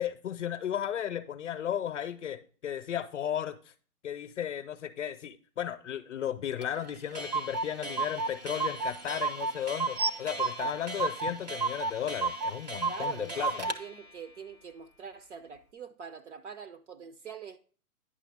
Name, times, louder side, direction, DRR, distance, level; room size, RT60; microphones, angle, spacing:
voice 1, 0.0-3.7 4.0-13.7, left 10 dB, 50° left, 0.7 m, -35 dB
Clock, 6.6-6.7 6.9-7.0 7.1-13.8, right 4 dB, 30° right, 0.4 m, -33 dB
sound 1, 8.3-8.4 8.7-9.2 9.9-11.6 12.3-12.4, right 4 dB, 80° right, 1.1 m, -36 dB
voice 2, 12.9-17.6, right 6 dB, 50° right, 0.8 m, -44 dB
9.9 x 5.8 x 3.4 m
hypercardioid pair, 155°, 45 cm